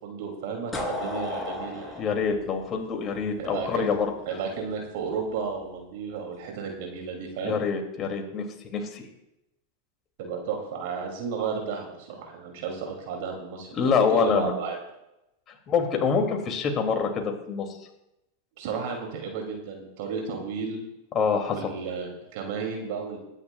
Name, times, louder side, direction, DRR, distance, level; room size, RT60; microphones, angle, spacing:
voice 1, 0.0-2.0 3.4-4.0 4.3-7.6 10.2-13.7 13.9-14.8 18.6-20.8 21.5-23.2, right 5 dB, 60° right, 1 dB, 2.8 m, -33 dB
sound 1, 0.7-3.6, left 2 dB, 15° left, 3.5 m, -34 dB
voice 2, 2.0-4.1 7.4-8.4 8.7-9.0 13.7-14.5 15.7-17.7 21.1-21.6, left 6 dB, 35° left, 3 dB, 2.6 m, -25 dB
21.5 x 9.9 x 2.4 m, 0.87 s
hypercardioid pair, 95°, 0 cm